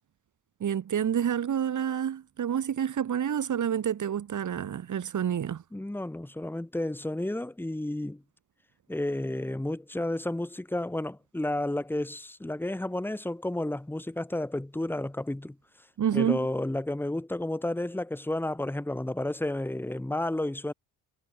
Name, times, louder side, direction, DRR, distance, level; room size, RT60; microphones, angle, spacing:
voice 1, 0.6-5.6 16.0-16.5, right 9 dB, 50° right, 4.9 m, -28 dB
voice 2, 5.7-8.2 8.9-15.6 16.1-20.7, left 1 dB, 5° left, 2.1 m, -31 dB
supercardioid pair, 80°, 38 cm